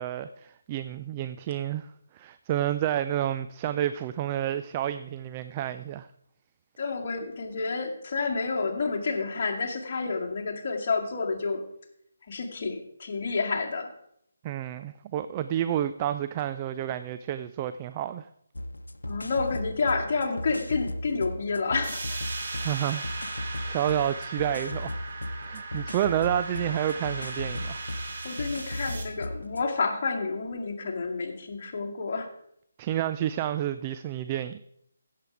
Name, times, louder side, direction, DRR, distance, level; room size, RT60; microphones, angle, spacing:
voice 1, 0.0-6.1 14.4-18.3 22.6-25.0 25.5-27.8 32.8-34.6, right 11 dB, 25° right, 11 dB, 0.4 m, -30 dB
voice 2, 6.8-11.6 12.3-13.9 19.1-22.2 28.2-32.3, left 4 dB, 40° left, 0 dB, 2.1 m, -29 dB
sound 1, 18.5-29.7, left 1 dB, 80° left, 0.9 m, -37 dB
sound 2, 21.8-29.0, right 3 dB, 50° right, 2.3 m, -38 dB
16.0 x 7.4 x 4.7 m, 0.74 s
figure-of-eight pair, 150°, 0 cm